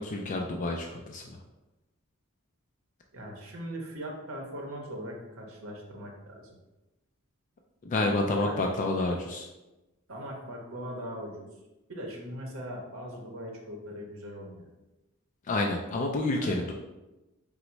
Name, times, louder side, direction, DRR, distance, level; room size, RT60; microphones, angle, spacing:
voice 1, 0.0-1.4 7.8-9.5 15.5-16.7, left 2 dB, 35° left, 2 dB, 0.3 m, -29 dB
voice 2, 3.1-6.6 8.2-8.6 10.1-11.5 11.9-14.7 16.3-16.6, equal, 70° right, 0 dB, 0.7 m, -40 dB
3.9 x 2.1 x 4.4 m, 1.0 s
head